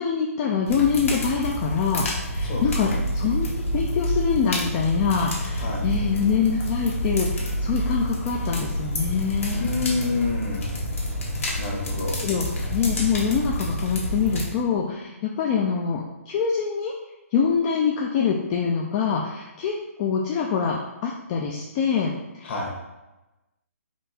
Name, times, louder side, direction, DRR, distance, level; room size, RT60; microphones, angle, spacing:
voice 1, 0.0-2.9 3.1-3.5 3.7-9.7 12.2-12.4 12.7-16.9 17.3-22.5, left 6 dB, 25° left, -1 dB, 0.4 m, -25 dB
sound 1, 0.6-14.4, equal, 60° left, 1.3 m, -28 dB
voice 2, 2.4-3.0 5.6-5.9 9.5-10.7 11.5-12.2 22.4-22.7, left 3 dB, 45° left, -2 dB, 1.3 m, -28 dB
4.4 x 2.7 x 4.1 m, 1.0 s
figure-of-eight pair, 140°, 8 cm